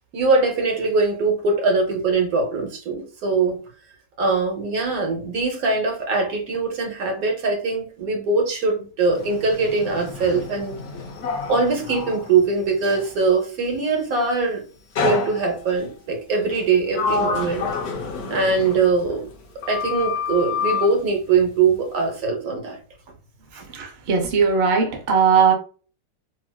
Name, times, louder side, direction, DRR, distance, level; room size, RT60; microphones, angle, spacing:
voice 1, 0.1-3.6 4.2-10.7 11.5-14.6 15.0-17.7 18.3-19.3 19.7-22.8 23.5-23.7, right 4 dB, 60° right, 1.1 m, -22 dB
Sliding door, 9.1-13.1 15.0-15.8 16.5-19.4 19.6-20.9, left 5 dB, 60° left, 0.7 m, -28 dB
voice 2, 23.7-25.5, right 6 dB, 75° right, 0.5 m, -19 dB
3.4 x 2.4 x 2.2 m
omnidirectional pair, 1.9 m